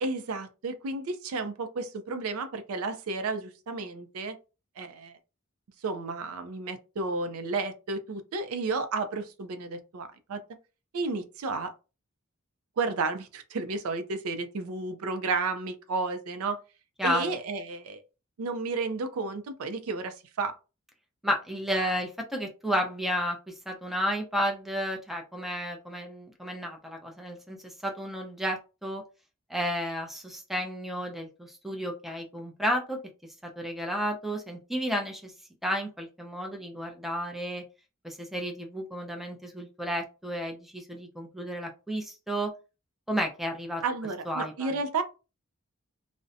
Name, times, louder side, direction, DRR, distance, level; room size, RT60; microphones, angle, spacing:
voice 1, 0.0-4.4 4.8-5.2 5.8-10.4 10.9-11.7 12.8-16.6 17.0-18.0 18.4-20.6 43.8-45.0, right 3 dB, 70° right, 0.4 m, -32 dB
voice 2, 17.0-17.4 21.2-29.0 29.5-33.0 33.4-35.3 35.6-37.7 38.0-42.5 43.1-43.8 44.3-44.8, equal, ahead, 0.5 m, -32 dB
2.6 x 2.1 x 2.4 m
head